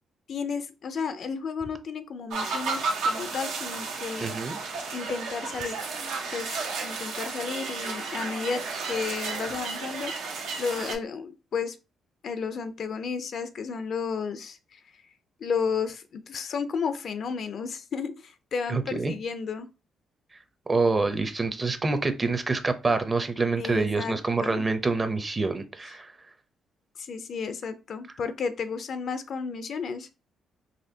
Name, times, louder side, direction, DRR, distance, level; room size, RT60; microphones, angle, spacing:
voice 1, 0.3-4.4 4.9-5.8 6.3-11.8 12.2-15.0 15.4-19.7 23.6-24.6 27.0-30.1, left 5 dB, 60° left, 0.4 m, -33 dB
sound 1, 2.3-10.9, right 4 dB, 90° right, 0.9 m, -32 dB
voice 2, 4.2-4.6 18.7-19.1 20.7-26.1, right 3 dB, 25° right, 0.6 m, -26 dB
4.1 x 2.9 x 2.7 m
cardioid pair, 90°, 0 cm